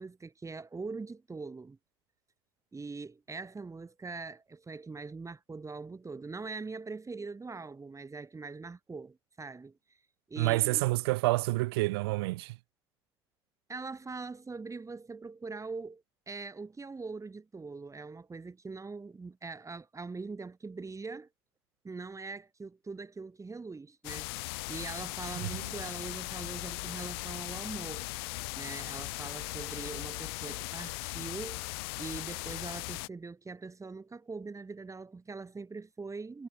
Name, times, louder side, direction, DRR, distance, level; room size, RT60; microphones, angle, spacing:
voice 1, 0.0-1.8 2.7-9.7 10.3-10.8 13.7-21.3 21.8-28.1 28.6-36.5, right 4 dB, 25° right, 3.1 m, -42 dB
voice 2, 10.4-12.6 25.4-25.6, right 21 dB, 75° right, 0.4 m, -28 dB
sound 1, 24.0-33.1, left 26 dB, 75° left, 0.4 m, -38 dB
hypercardioid pair, 60°, 13 cm